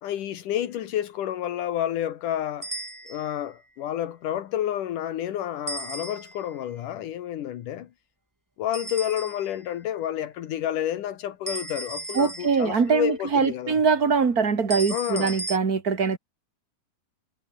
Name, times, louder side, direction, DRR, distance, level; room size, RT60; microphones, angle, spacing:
voice 1, 0.0-2.7 3.1-7.9 8.6-13.8 14.9-15.3, left 11 dB, 80° left, 2.9 m, -30 dB
sound 1, 2.6-3.4 5.7-6.5 8.7-9.6 11.5-12.9 14.7-15.6, right 1 dB, 10° right, 0.9 m, -36 dB
voice 2, 12.1-16.2, right 5 dB, 30° right, 2.5 m, -22 dB
omnidirectional pair, 3.7 m